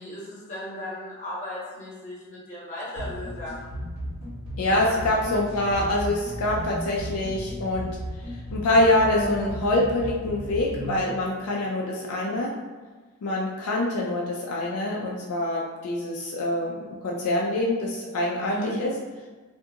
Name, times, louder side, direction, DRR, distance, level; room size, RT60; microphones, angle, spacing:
voice 1, 0.0-3.7 4.7-5.0 18.4-18.7, left 1 dB, 35° left, -8 dB, 1.0 m, -36 dB
sound 1, 3.0-11.0, equal, 80° right, 1.1 m, -35 dB
voice 2, 4.6-7.9 8.5-12.5 13.2-16.8 17.0-18.9, left 1 dB, 80° left, -2 dB, 0.4 m, -25 dB
2.5 x 2.3 x 2.8 m, 1.3 s
head